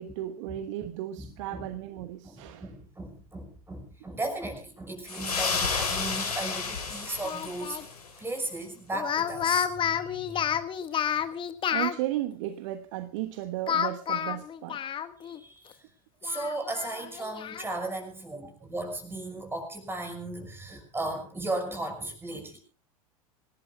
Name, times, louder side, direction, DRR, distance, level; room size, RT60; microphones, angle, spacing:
voice 1, 0.0-2.7 9.9-10.4 11.7-14.8, right 14 dB, 55° right, 1.2 m, -35 dB
voice 2, 1.2-1.6 2.2-7.8 8.2-10.4 10.9-11.0 15.2-15.8 16.2-22.6, right 2 dB, 10° right, 5.9 m, -36 dB
sound 1, 5.1-8.1, left 5 dB, 80° left, 4.5 m, -31 dB
Speech, 7.2-7.8 8.9-12.0 13.7-15.4 15.7-15.8 16.2-17.7, left 8 dB, 25° left, 1.4 m, -30 dB
26.5 x 18.5 x 2.3 m
figure-of-eight pair, 85°, 19 cm